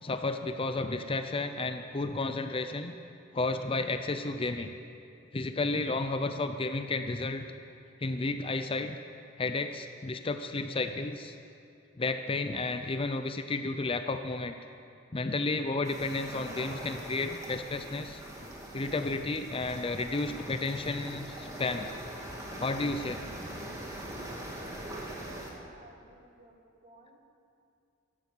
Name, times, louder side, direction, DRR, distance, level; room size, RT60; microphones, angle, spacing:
voice 1, 0.0-3.0 3.3-4.7 5.3-7.5 8.0-9.0 9.4-11.3 12.0-14.5 15.1-18.2 18.7-21.9 22.6-23.2, left 3 dB, 25° left, 8 dB, 0.5 m, -32 dB
sound 1, 15.8-25.5, right 1 dB, 15° right, 2.2 m, -42 dB
voice 2, 25.4-26.6 26.8-27.2, right 1 dB, 35° right, 1 dB, 2.0 m, -57 dB
13.5 x 12.5 x 8.2 m, 2.6 s
head